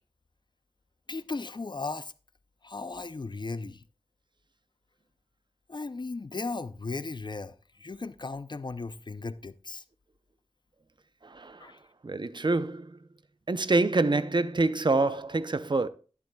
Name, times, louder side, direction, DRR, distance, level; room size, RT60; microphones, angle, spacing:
voice 1, 1.1-2.1 2.6-3.8 5.7-9.8 11.6-11.8, left 3 dB, 45° left, 0.5 m, -36 dB
voice 2, 11.3-11.6 12.0-12.9 13.5-15.9, right 3 dB, 45° right, 0.6 m, -26 dB
11.0 x 11.0 x 2.3 m
wide cardioid pair, 60°, 11 cm